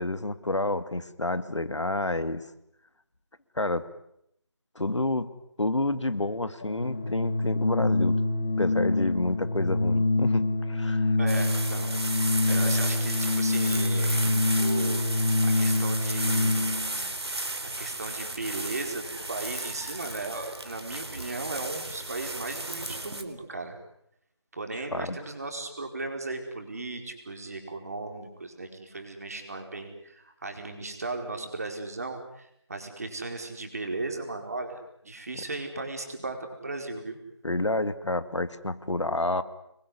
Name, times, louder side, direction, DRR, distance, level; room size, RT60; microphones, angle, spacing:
voice 1, 0.0-2.5 3.6-3.9 4.8-5.3 5.6-8.2 8.6-11.1 24.7-25.2 35.3-35.4 37.4-39.4, left 2 dB, 80° left, 12 dB, 2.4 m, -29 dB
Organ, 6.6-16.9, left 2 dB, 20° left, 2.0 m, -26 dB
voice 2, 11.2-11.9 12.5-14.2 14.5-16.7 17.8-23.8 24.5-37.2, right 2 dB, 35° right, 4 dB, 4.8 m, -36 dB
sound 1, 11.3-23.2, right 2 dB, 65° right, 3.9 m, -34 dB
27.0 x 22.5 x 9.8 m, 0.77 s
figure-of-eight pair, 175°, 15 cm